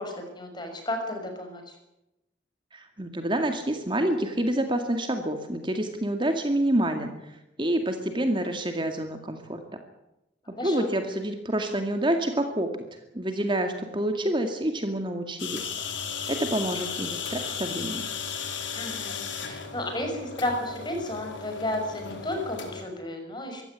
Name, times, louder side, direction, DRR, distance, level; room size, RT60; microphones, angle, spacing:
voice 1, 0.0-1.7 10.6-10.9 18.7-23.6, left 1 dB, 25° left, 4 dB, 6.2 m, -33 dB
voice 2, 2.7-7.1 7.6-9.6 10.5-12.7 13.1-15.7 16.3-18.1, right 1 dB, 25° right, 6 dB, 2.1 m, -27 dB
sound 1, 15.4-22.8, left 6 dB, 90° left, 4.3 m, -35 dB
24.5 x 15.5 x 9.5 m, 0.91 s
head